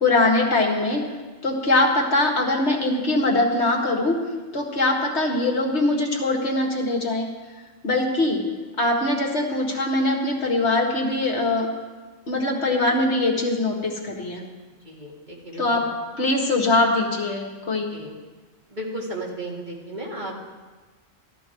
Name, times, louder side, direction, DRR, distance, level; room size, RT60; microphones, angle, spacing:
voice 1, 0.0-1.0 1.4-4.2 4.5-7.3 7.8-8.4 8.8-11.7 12.3-14.4 15.6-15.8 16.2-17.9, left 2 dB, 60° left, 1 dB, 2.0 m, -22 dB
voice 2, 14.8-15.7 17.9-18.1 18.7-20.4, right 1 dB, 35° right, -3 dB, 2.5 m, -34 dB
14.0 x 13.0 x 4.6 m, 1.3 s
omnidirectional pair, 1.3 m